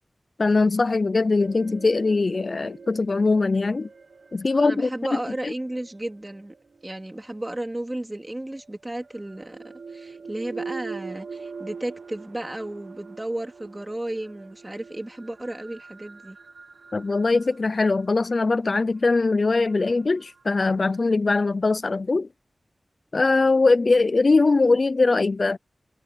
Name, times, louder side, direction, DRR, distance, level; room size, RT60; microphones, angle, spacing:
voice 1, 0.4-3.9 4.3-5.5 16.9-22.3 23.1-25.6, left 3 dB, 50° left, 0.4 m, -21 dB
sound 1, 1.4-7.4 8.6-21.0, right 5 dB, 80° right, 1.0 m, -43 dB
voice 2, 4.6-6.5 6.8-16.4, right 1 dB, 20° right, 2.5 m, -33 dB
wide cardioid pair, 95°, 0 cm